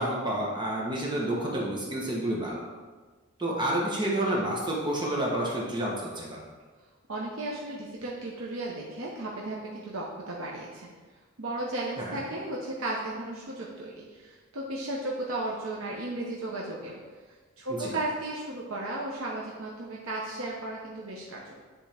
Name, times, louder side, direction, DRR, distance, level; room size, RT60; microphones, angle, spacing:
voice 1, 0.0-2.7 3.4-6.4 12.0-12.2 17.8-17.9, right 1 dB, 20° right, -4 dB, 1.1 m, -29 dB
voice 2, 7.1-10.9 11.4-17.0 17.6-21.6, right 2 dB, 80° right, -4 dB, 0.9 m, -35 dB
10.5 x 3.5 x 3.4 m, 1.4 s
head